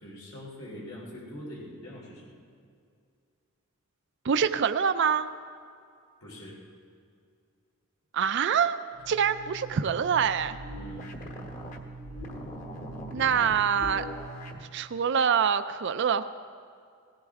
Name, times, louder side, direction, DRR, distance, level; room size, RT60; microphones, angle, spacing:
voice 1, 0.0-2.3 6.2-6.6 10.7-11.2, equal, 85° left, -5 dB, 3.3 m, -43 dB
voice 2, 4.2-5.3 8.1-8.8 9.1-10.6 13.1-14.1 14.7-16.2, right 7 dB, 55° right, 10 dB, 0.4 m, -25 dB
sound 1, 8.9-14.6, right 1 dB, 35° left, 1.2 m, -41 dB
18.0 x 16.5 x 3.6 m, 2.3 s
head